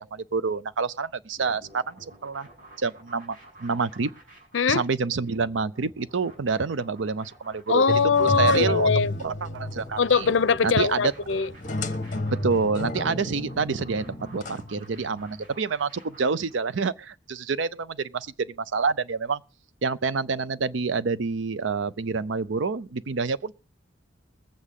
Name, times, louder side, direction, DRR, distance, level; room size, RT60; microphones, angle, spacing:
voice 1, 0.0-2.5 2.8-4.1 4.7-7.8 8.2-8.9 9.2-10.3 10.6-11.1 12.3-19.4 19.8-23.5, right 4 dB, 75° right, 0.6 m, -27 dB
sound 1, 1.4-16.8, right 1 dB, 45° right, 6.0 m, -51 dB
voice 2, 7.7-9.1 10.0-11.5, left 5 dB, 75° left, 0.6 m, -21 dB
sound 2, 7.9-15.5, left 1 dB, 40° left, 1.0 m, -32 dB
21.0 x 8.3 x 3.7 m
head